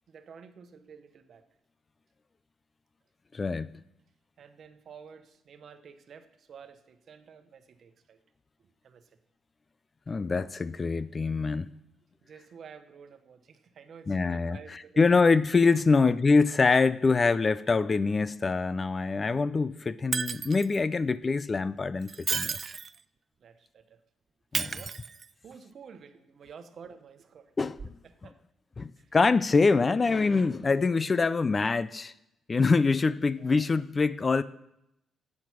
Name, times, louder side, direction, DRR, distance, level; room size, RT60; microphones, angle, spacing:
voice 1, 0.1-1.5 4.4-8.2 8.8-9.2 12.2-15.2 15.9-16.1 23.4-24.0 24.6-25.0 25.4-27.5 28.0-28.4 29.0-29.2 33.4-33.7, right 6 dB, 55° right, 1.1 m, -50 dB
voice 2, 3.3-3.8 10.1-11.7 14.1-22.6 24.5-24.8 27.6-27.8 28.8-32.1 32.5-34.4, left 4 dB, 30° left, 0.4 m, -25 dB
Shatter, 20.1-20.8 22.0-23.0 24.5-25.5 27.8-27.9, right 5 dB, 40° right, 0.3 m, -33 dB
10.5 x 8.5 x 6.1 m
cardioid pair, 90°, 0 cm